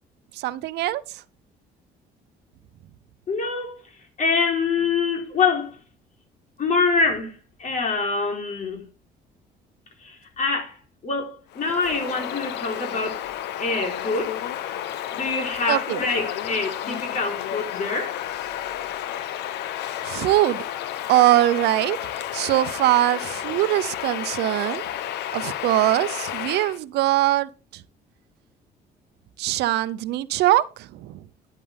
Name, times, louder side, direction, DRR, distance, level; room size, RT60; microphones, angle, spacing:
voice 1, 0.4-1.0 15.7-16.0 20.0-20.6 21.1-22.0 22.3-24.8 25.3-27.8 29.4-31.2, right 15 dB, 80° right, 0.7 m, -22 dB
voice 2, 3.3-3.8 4.2-5.8 6.6-8.8 10.0-13.2 13.6-14.4 15.1-18.2, left 4 dB, 50° left, 3.8 m, -25 dB
Bird vocalization bird call bird song, 11.5-26.8, left 11 dB, 80° left, 1.0 m, -31 dB
11.0 x 10.0 x 3.5 m
cardioid pair, 110°, 17 cm